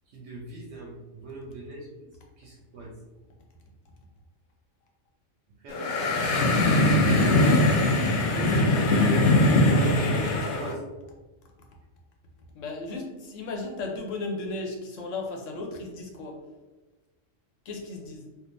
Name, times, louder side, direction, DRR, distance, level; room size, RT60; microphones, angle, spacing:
voice 1, 0.1-1.9 2.4-2.9 5.6-5.8 7.0-7.8 8.3-9.3 9.6-10.8, right 2 dB, 65° right, -3 dB, 0.8 m, -37 dB
sound 1, 5.7-10.7, left 2 dB, 55° left, 0.6 m, -21 dB
voice 2, 12.5-16.4 17.7-18.2, left 2 dB, 85° left, 1 dB, 1.1 m, -35 dB
3.5 x 2.4 x 2.5 m, 1.2 s
omnidirectional pair, 1.3 m